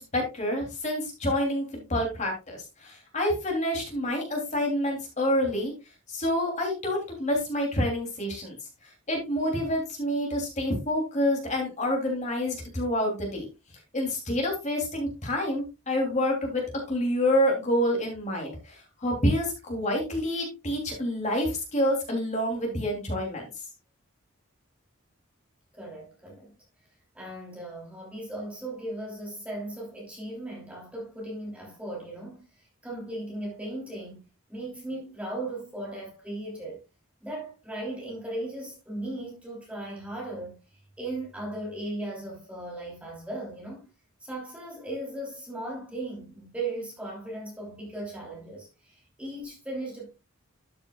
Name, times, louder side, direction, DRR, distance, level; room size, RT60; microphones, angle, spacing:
voice 1, 0.0-5.7 6.1-8.6 8.8-13.4 13.9-16.6 16.9-23.5, left 1 dB, 35° left, 3.2 m, -28 dB
voice 2, 25.7-26.5 27.1-36.8 37.2-40.6 41.0-43.9 44.2-50.1, right 1 dB, 5° right, 3.1 m, -37 dB
12.5 x 6.8 x 2.4 m
head